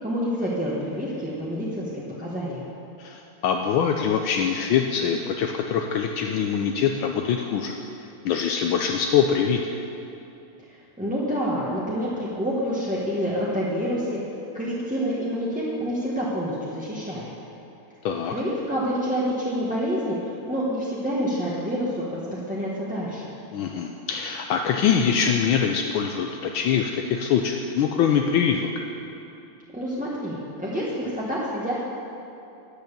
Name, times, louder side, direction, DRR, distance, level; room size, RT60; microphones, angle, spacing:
voice 1, 0.0-2.6 11.0-14.2 14.5-17.3 18.3-23.3 29.7-31.8, equal, 5° right, -8 dB, 1.0 m, -28 dB
voice 2, 3.0-7.7 8.2-9.8 18.0-18.3 23.5-28.7, left 7 dB, 75° left, 3 dB, 1.3 m, -23 dB
10.5 x 8.0 x 6.8 m, 2.8 s
omnidirectional pair, 2.4 m